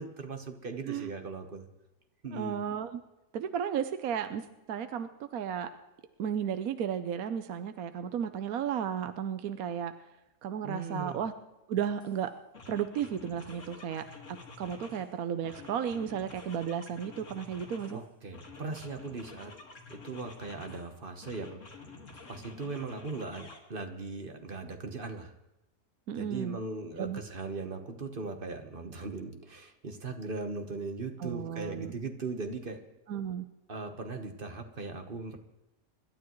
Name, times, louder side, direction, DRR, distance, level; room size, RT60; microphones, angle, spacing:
voice 1, 0.0-1.7 2.2-2.6 10.6-11.2 17.9-19.6 19.9-21.6 22.3-25.3 26.1-32.8 33.7-35.4, right 3 dB, 35° right, 6 dB, 1.2 m, -39 dB
voice 2, 2.3-3.0 3.3-4.4 4.7-5.7 6.2-9.9 10.4-11.3 11.7-12.3 12.7-18.0 26.1-26.6 27.0-27.2 31.2-31.9 33.1-33.4, right 8 dB, 65° right, 9 dB, 1.1 m, -34 dB
sound 1, 12.0-12.2 12.5-15.1 15.4-18.0 18.3-20.9 21.2-23.6, left 3 dB, 50° left, 2.2 m, -49 dB
26.0 x 12.0 x 3.1 m, 0.97 s
omnidirectional pair, 1.8 m